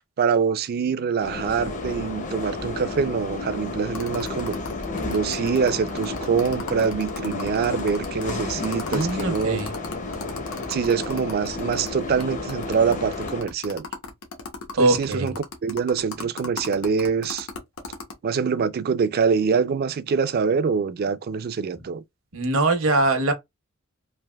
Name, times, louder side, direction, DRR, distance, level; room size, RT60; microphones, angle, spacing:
voice 1, 0.2-4.5 5.1-9.6 10.7-13.9 14.8-17.5 18.2-22.0, right 6 dB, 50° right, 0.4 m, -24 dB
sound 1, 1.2-13.4, left 3 dB, 35° left, 0.6 m, -32 dB
sound 2, 3.9-11.9 12.2-12.3 12.5-18.1, left 4 dB, 80° left, 0.9 m, -36 dB
voice 2, 8.9-9.7 14.8-15.3 22.3-23.3, right 2 dB, 75° right, 0.8 m, -22 dB
3.3 x 2.5 x 2.2 m
head